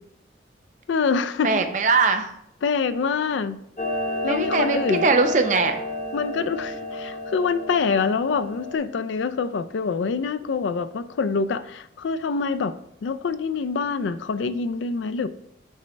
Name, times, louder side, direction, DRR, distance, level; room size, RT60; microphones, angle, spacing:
voice 1, 0.9-1.6 2.6-3.6 4.2-5.1 6.1-15.3, left 5 dB, 75° left, 13 dB, 0.4 m, -25 dB
voice 2, 1.4-2.3 4.3-5.8, right 4 dB, 40° right, 6 dB, 0.6 m, -21 dB
Clock, 3.8-8.7, left 1 dB, 35° left, 0.8 m, -31 dB
7.2 x 3.3 x 5.1 m, 0.75 s
head